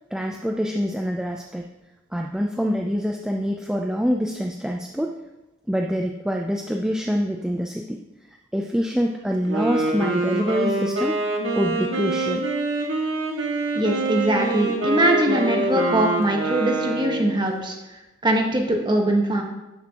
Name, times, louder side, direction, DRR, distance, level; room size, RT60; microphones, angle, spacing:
voice 1, 0.1-1.7 2.1-5.1 5.7-8.0 8.3-11.2 11.5-12.4, equal, 5° right, 2 dB, 0.4 m, -25 dB
Wind instrument woodwind instrument, 9.3-17.3, right 2 dB, 65° right, 1.9 m, -25 dB
voice 2, 13.7-17.7 18.2-19.4, right 1 dB, 20° right, 1 dB, 1.3 m, -22 dB
12.0 x 9.7 x 2.9 m, 1.0 s
head